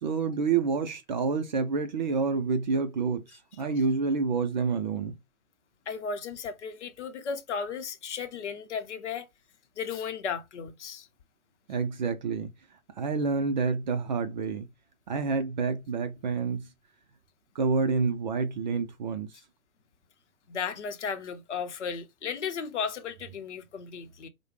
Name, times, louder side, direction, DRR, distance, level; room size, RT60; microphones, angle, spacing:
voice 1, 0.0-3.3 3.6-5.2 11.7-12.5 13.0-14.7 15.1-16.7 17.6-19.3, right 4 dB, 35° right, 0.5 m, -28 dB
voice 2, 5.9-9.3 9.8-11.1 20.5-24.3, left 6 dB, 55° left, 0.8 m, -35 dB
4.7 x 2.2 x 3.1 m
figure-of-eight pair, 120°, 41 cm